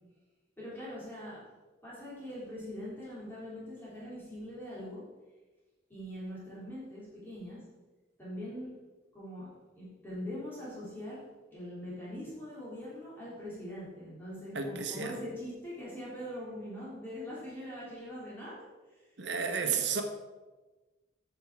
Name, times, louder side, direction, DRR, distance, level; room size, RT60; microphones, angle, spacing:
voice 1, 0.6-1.4 1.8-5.0 5.9-7.6 8.2-8.7 9.1-9.5 9.8-11.2 11.5-18.6 18.9-19.0 19.6-20.0, equal, 10° left, -9 dB, 3.4 m, -42 dB
voice 2, 14.5-15.2 19.2-20.0, right 6 dB, 70° right, 6 dB, 0.9 m, -32 dB
9.1 x 6.7 x 4.7 m, 1.2 s
head